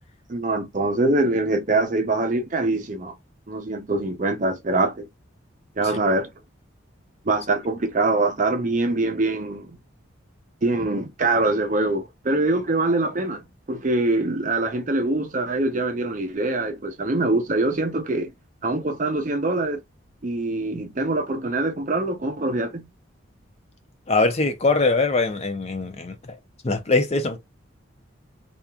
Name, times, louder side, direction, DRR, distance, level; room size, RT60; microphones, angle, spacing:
voice 1, 0.3-3.1 3.5-5.1 5.8-6.3 7.2-9.8 10.6-18.3 18.6-19.8 20.2-22.9, right 2 dB, 40° right, 0.5 m, -24 dB
voice 2, 24.1-26.4 26.6-27.4, left 3 dB, 30° left, 0.5 m, -22 dB
2.8 x 2.4 x 2.2 m
head